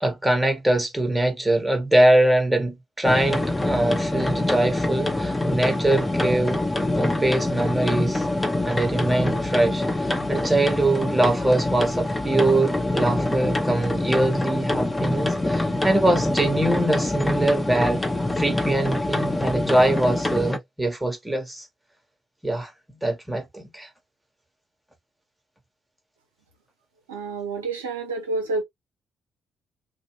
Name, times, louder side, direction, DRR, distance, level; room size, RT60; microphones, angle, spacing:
voice 1, 0.0-6.6 7.0-8.3 8.6-18.0 18.4-21.6 22.4-23.9, right 1 dB, 10° right, 1.2 m, -23 dB
sound 1, 3.0-20.6, left 1 dB, 15° left, 0.8 m, -25 dB
voice 2, 27.1-28.6, right 3 dB, 85° right, 0.5 m, -28 dB
2.6 x 2.1 x 3.0 m
figure-of-eight pair, 40°, 0 cm